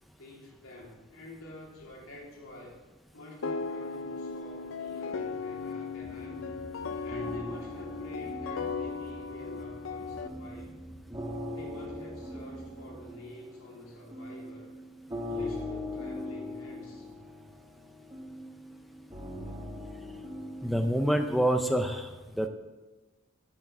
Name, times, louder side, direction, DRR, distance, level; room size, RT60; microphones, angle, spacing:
voice 1, 0.2-2.8 3.1-6.5 7.0-10.7 11.5-14.7 15.3-17.1, left 1 dB, 85° left, -3 dB, 3.0 m, -48 dB
sound 1, 3.4-10.3, left 4 dB, 65° left, 0.5 m, -37 dB
sound 2, 5.1-9.8 10.2-21.8, left 1 dB, 20° right, 1.4 m, -42 dB
sound 3, 6.0-13.0, equal, 40° right, 2.1 m, -50 dB
voice 2, 20.6-22.5, right 1 dB, ahead, 6 dB, 0.5 m, -27 dB
8.8 x 6.3 x 7.1 m, 1.2 s
head